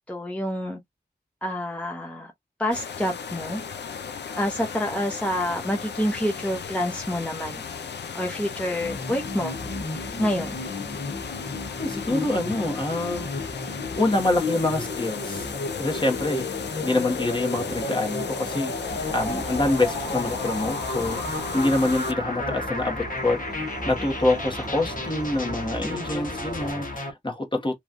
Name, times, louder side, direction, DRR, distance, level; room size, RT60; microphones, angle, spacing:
voice 1, 0.1-0.8 1.4-2.3 2.6-3.6 4.4-7.6 8.1-9.6 10.2-10.6, equal, 5° left, 0.7 m, -28 dB
sound 1, 2.7-22.1, left 6 dB, 85° left, 0.5 m, -36 dB
sound 2, 8.8-27.1, left 2 dB, 55° left, 0.9 m, -33 dB
voice 2, 11.8-13.6 14.0-15.5 15.8-27.8, left 2 dB, 30° left, 1.1 m, -26 dB
sound 3, 18.9-26.7, right 2 dB, 25° right, 0.7 m, -40 dB
3.1 x 2.3 x 2.5 m
wide cardioid pair, 55°, 17 cm